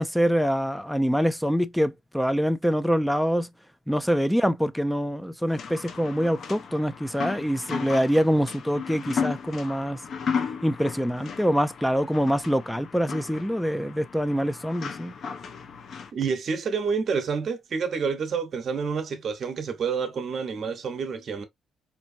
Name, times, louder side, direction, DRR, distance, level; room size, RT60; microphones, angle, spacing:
voice 1, 0.0-3.5 3.9-10.0 10.6-15.1, equal, 5° left, 0.5 m, -25 dB
sound 1, 5.5-16.1, left 6 dB, 60° left, 0.8 m, -35 dB
voice 2, 16.1-21.4, right 5 dB, 55° right, 1.0 m, -28 dB
4.4 x 2.7 x 2.6 m
cardioid pair, 90°, 0 cm